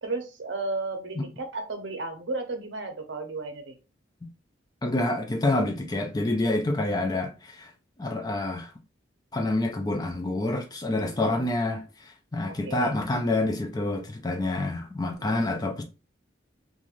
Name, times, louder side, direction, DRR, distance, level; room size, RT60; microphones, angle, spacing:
voice 1, 0.0-3.7 11.1-11.2 12.5-12.9 15.2-15.6, right 3 dB, 70° right, 0.6 m, -34 dB
voice 2, 4.8-7.7 8.0-8.7 9.3-15.8, left 2 dB, 20° left, 0.3 m, -27 dB
2.5 x 2.4 x 2.9 m
head